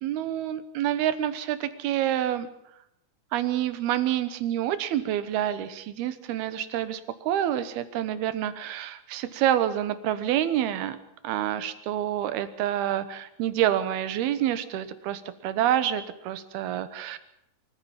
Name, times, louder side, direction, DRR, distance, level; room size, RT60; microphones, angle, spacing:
voice 1, 0.0-2.5 3.3-11.0 11.2-17.2, right 11 dB, 75° right, 13 dB, 3.0 m, -27 dB
25.0 x 14.5 x 7.3 m, 0.80 s
omnidirectional pair, 4.6 m